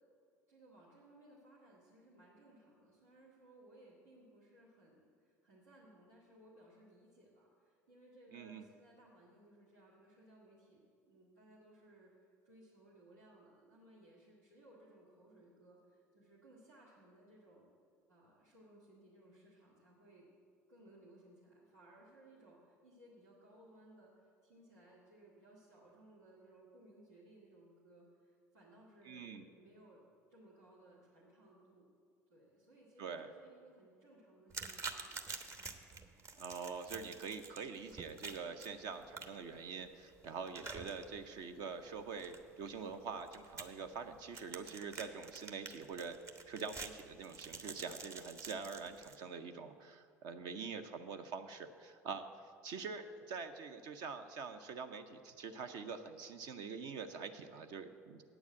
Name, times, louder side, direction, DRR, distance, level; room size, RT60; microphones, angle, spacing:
voice 1, 0.5-12.1 12.4-17.7 18.1-20.3 20.7-30.0 30.3-31.9 32.3-35.2, right 1 dB, 90° right, -9 dB, 2.0 m, -62 dB
voice 2, 8.3-8.6 29.0-29.4 33.0-33.3 36.4-46.2 46.5-52.2 52.6-58.2, right 5 dB, 60° right, 8 dB, 0.6 m, -45 dB
sound 1, 34.5-49.2, right 4 dB, 35° right, 1.0 m, -49 dB
8.8 x 7.2 x 8.5 m, 2.3 s
hypercardioid pair, 70°, 8 cm